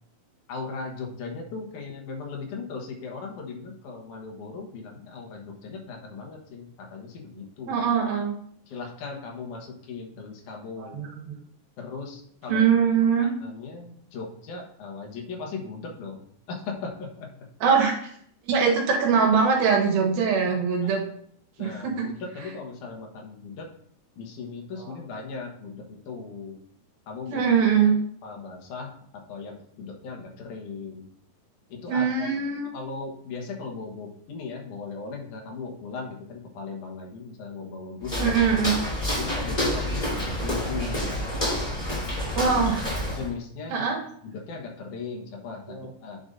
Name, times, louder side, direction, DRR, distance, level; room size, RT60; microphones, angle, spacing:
voice 1, 0.5-7.8 8.7-11.0 11.8-12.7 13.4-16.2 16.5-17.3 20.8-21.0 21.6-23.7 24.2-26.6 27.1-27.5 28.2-28.9 29.3-31.0 31.7-32.3 32.7-38.3 39.1-41.2 42.4-42.5 43.1-43.9 44.2-46.2, left 4 dB, 65° left, 1 dB, 2.4 m, -38 dB
voice 2, 7.7-8.4 10.8-11.4 12.5-13.3 17.6-18.0 18.5-21.0 21.6-22.1 27.3-27.9 31.9-32.8 38.2-38.7 42.4-42.9 43.7-44.0 45.7-45.9, right 6 dB, 85° right, 0 dB, 2.9 m, -22 dB
Walk footsteps, 38.0-43.3, left 1 dB, 10° left, 3.5 m, -28 dB
10.5 x 6.7 x 2.6 m, 0.66 s
omnidirectional pair, 4.2 m